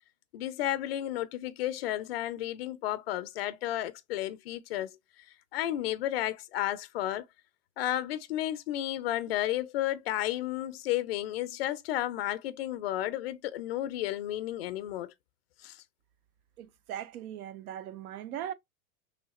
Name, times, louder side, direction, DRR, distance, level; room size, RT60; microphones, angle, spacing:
voice 1, 0.3-5.0 5.5-7.2 7.8-15.1 15.6-15.8, left 13 dB, 45° left, 0.4 m, -32 dB
voice 2, 16.6-18.5, right 10 dB, 70° right, 0.6 m, -39 dB
3.2 x 2.7 x 4.0 m
supercardioid pair, 170°, 45 cm